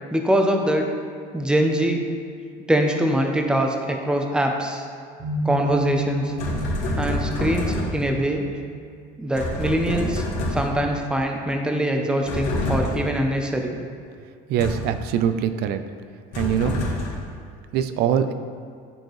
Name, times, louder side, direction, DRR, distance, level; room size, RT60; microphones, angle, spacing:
voice 1, 0.1-0.9 1.3-2.0 2.7-4.8 5.4-6.3 7.0-8.5 9.2-13.8, right 1 dB, 5° right, 3 dB, 0.6 m, -23 dB
sound 1, 5.2-11.0, right 3 dB, 40° right, 1.3 m, -34 dB
sound 2, 6.4-8.1 9.3-10.9 12.3-13.2 14.6-15.0 16.3-17.3, left 1 dB, 70° left, 1.6 m, -27 dB
voice 2, 14.5-15.8 16.3-16.8 17.7-18.3, right 9 dB, 65° right, 10 dB, 0.5 m, -22 dB
10.5 x 4.5 x 3.1 m, 2.2 s
cardioid pair, 135°, 18 cm